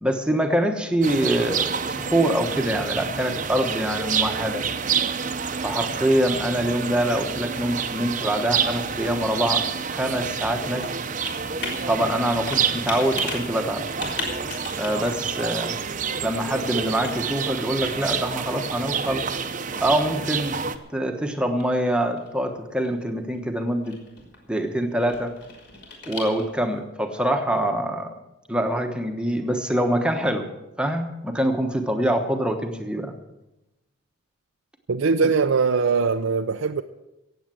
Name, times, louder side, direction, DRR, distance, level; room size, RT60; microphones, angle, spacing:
voice 1, 0.0-4.6 5.6-10.9 11.9-13.8 14.8-15.9 16.2-19.2 19.8-20.6 20.9-24.0 24.5-25.3 26.1-28.1 28.5-30.5 30.8-33.1, right 1 dB, 5° right, 1.1 m, -24 dB
sound 1, 1.0-20.8, right 6 dB, 40° right, 0.8 m, -28 dB
Computer keyboard, 8.5-26.8, left 3 dB, 55° left, 3.7 m, -40 dB
voice 2, 34.9-36.8, right 5 dB, 80° right, 0.5 m, -21 dB
17.0 x 8.0 x 7.6 m
head